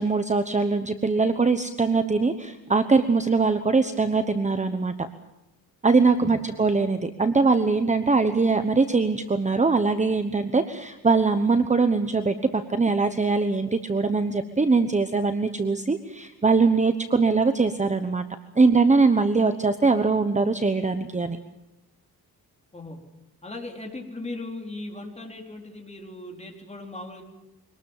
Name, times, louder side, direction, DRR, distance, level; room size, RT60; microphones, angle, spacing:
voice 1, 0.0-5.1 5.8-18.2 18.6-21.4, right 4 dB, 20° right, 9 dB, 1.1 m, -22 dB
voice 2, 6.2-6.5 22.7-23.0 23.4-27.2, left 2 dB, 15° left, 2 dB, 4.2 m, -38 dB
24.5 x 19.5 x 7.4 m, 1.0 s
wide cardioid pair, 135°, 37 cm